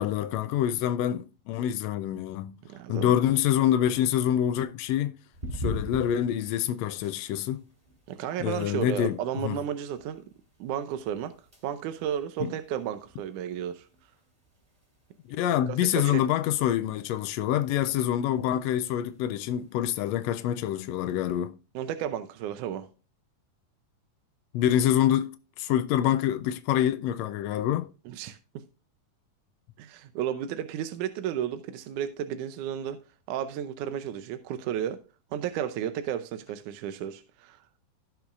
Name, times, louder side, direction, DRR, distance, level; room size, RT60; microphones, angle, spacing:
voice 1, 0.0-2.5 2.9-5.1 5.5-7.6 8.4-9.2 9.4-9.6 12.4-12.5 15.3-21.6 24.5-27.9, left 11 dB, 85° left, 1.5 m, -26 dB
voice 2, 2.7-3.2 8.1-10.2 10.6-11.3 11.6-13.9 15.7-16.2 21.8-22.9 28.1-28.6 29.8-33.0 33.3-35.0 35.3-37.6, right 10 dB, 80° right, 2.2 m, -33 dB
sound 1, 5.3-21.4, equal, 10° right, 3.6 m, -45 dB
16.5 x 6.1 x 2.5 m
omnidirectional pair, 3.6 m